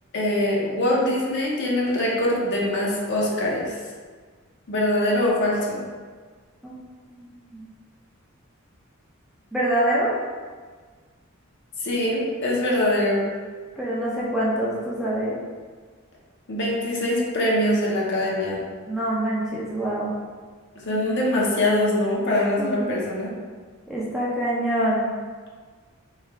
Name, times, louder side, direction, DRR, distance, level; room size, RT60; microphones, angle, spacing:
voice 1, 0.1-3.8 4.7-5.8 11.8-13.3 16.5-18.6 20.8-23.3, left 1 dB, 55° left, -4 dB, 0.7 m, -23 dB
voice 2, 7.2-7.6 9.5-10.1 13.8-15.4 18.9-20.1 22.6-22.9 23.9-25.1, right 1 dB, ahead, -7 dB, 0.5 m, -25 dB
3.2 x 2.8 x 3.5 m, 1.5 s
head